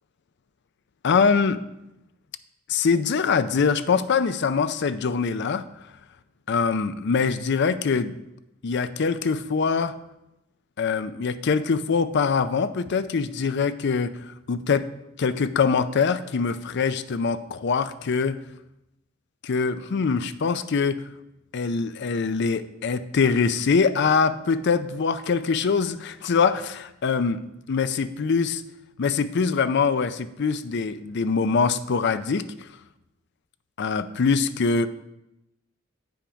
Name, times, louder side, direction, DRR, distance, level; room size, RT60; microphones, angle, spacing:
voice 1, 1.0-1.6 2.7-5.7 6.5-8.2 8.6-9.9 10.8-14.9 15.2-18.4 19.4-21.0 21.5-27.4 27.7-28.6 29.0-32.4 33.8-34.9, left 5 dB, 55° left, 13 dB, 0.5 m, -23 dB
8.3 x 5.8 x 5.1 m, 0.88 s
head